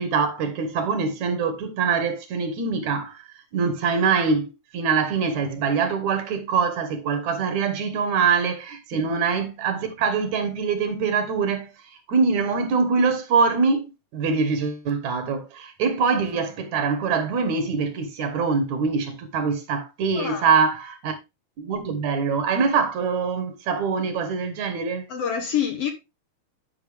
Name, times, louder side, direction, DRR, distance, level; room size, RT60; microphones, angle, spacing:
voice 1, 0.0-3.2 3.5-11.7 12.1-21.1 21.6-25.0, right 5 dB, 65° right, 2.5 m, -24 dB
voice 2, 20.1-20.5 25.1-25.9, left 8 dB, 60° left, 1.9 m, -27 dB
10.5 x 5.7 x 3.4 m
omnidirectional pair, 3.6 m